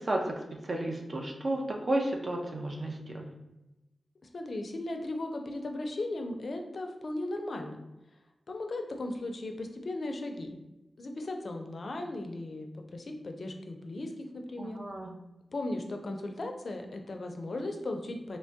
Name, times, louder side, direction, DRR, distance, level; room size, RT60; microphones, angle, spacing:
voice 1, 0.0-3.3 14.6-15.1, right 1 dB, 50° right, 1 dB, 0.4 m, -33 dB
voice 2, 4.3-7.8 8.5-10.6 11.0-14.8 15.5-18.4, left 2 dB, 60° left, 4 dB, 0.4 m, -37 dB
2.9 x 2.2 x 2.7 m, 0.97 s
cardioid pair, 60°, 0 cm